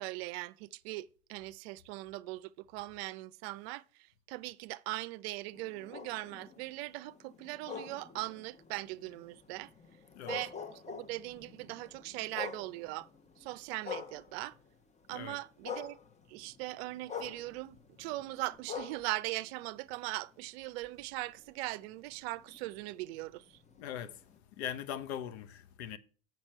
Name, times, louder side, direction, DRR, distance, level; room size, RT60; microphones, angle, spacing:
voice 1, 0.0-3.8 4.3-9.7 10.2-13.1 13.4-14.6 15.1-16.0 16.3-23.6, right 19 dB, 65° right, 0.5 m, -40 dB
sound 1, 5.5-14.8 15.1-20.3 20.8-24.4, left 6 dB, 20° left, 0.9 m, -47 dB
voice 2, 23.8-24.2 24.6-26.0, left 9 dB, 70° left, 0.8 m, -40 dB
7.3 x 6.0 x 4.5 m
hypercardioid pair, 90°, 33 cm